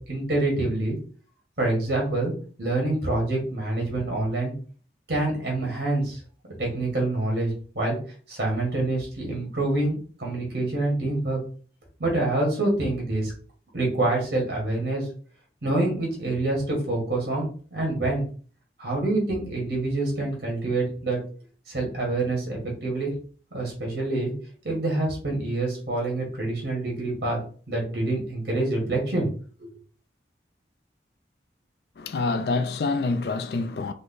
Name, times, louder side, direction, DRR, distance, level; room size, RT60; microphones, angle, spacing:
voice 1, 0.1-1.0 1.6-2.3 2.6-4.5 5.1-6.2 6.6-8.0 8.3-11.4 12.0-13.3 13.7-15.1 15.6-18.3 18.8-21.2 21.7-23.1 23.5-24.3 24.6-27.4 27.7-29.3 29.6-29.7, right 2 dB, 60° right, 2.1 m, -26 dB
voice 2, 32.0-33.9, left 3 dB, 65° left, 0.4 m, -26 dB
5.1 x 2.1 x 3.9 m
head